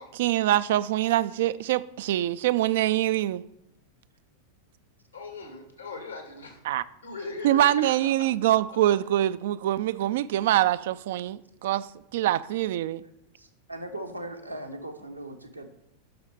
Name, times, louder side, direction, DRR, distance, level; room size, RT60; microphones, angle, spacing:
voice 1, 0.1-3.4 6.6-6.8 7.4-13.0, right 13 dB, 55° right, 0.3 m, -24 dB
voice 2, 5.1-6.6 7.0-7.6, left 3 dB, 80° left, 2.2 m, -39 dB
voice 3, 13.0-15.7, right 1 dB, 85° right, 1.1 m, -39 dB
9.2 x 6.4 x 4.9 m
figure-of-eight pair, 90°, 0 cm